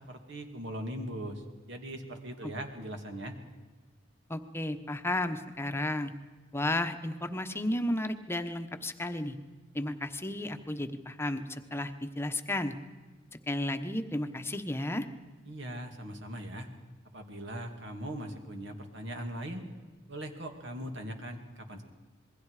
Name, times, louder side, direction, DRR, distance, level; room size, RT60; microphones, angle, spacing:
voice 1, 0.1-3.3 15.4-16.7 17.1-19.6 20.1-21.8, right 1 dB, 65° right, 4 dB, 2.6 m, -40 dB
voice 2, 4.3-6.1 6.5-9.3 9.7-12.7 13.5-15.1, left 1 dB, 10° left, 8 dB, 1.1 m, -33 dB
27.5 x 21.5 x 4.9 m, 1.3 s
head